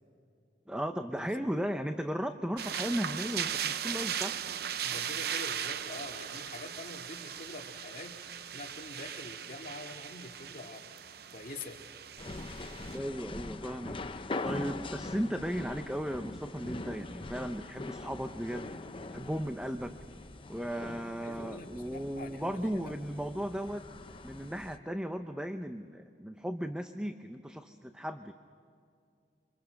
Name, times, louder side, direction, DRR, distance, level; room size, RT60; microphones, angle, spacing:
voice 1, 0.7-4.4 12.9-18.7 19.1-19.9 20.5-23.8 24.2-28.3, equal, 5° right, 7 dB, 0.6 m, -36 dB
sound 1, 2.6-13.0, right 9 dB, 60° right, 0.7 m, -38 dB
voice 2, 4.8-10.9 11.3-11.8 21.2-22.9, left 2 dB, 50° left, 1 dB, 2.3 m, -45 dB
sound 2, 12.2-24.8, left 2 dB, 30° left, 0.7 m, -42 dB
28.0 x 25.5 x 6.5 m, 2.4 s
head